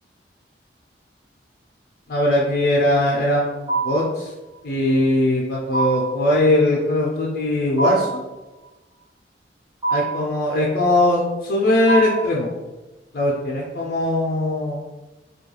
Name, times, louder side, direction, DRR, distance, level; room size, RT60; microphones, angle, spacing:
voice 1, 2.1-4.3 4.6-8.2 9.9-12.5 13.1-14.8, left 1 dB, 55° left, -3 dB, 0.4 m, -20 dB
sound 1, 3.7-4.2 5.7-6.2 7.8-8.3 9.8-10.3 11.9-12.4, right 4 dB, 10° right, 0.7 m, -24 dB
2.2 x 2.2 x 2.9 m, 1.1 s
head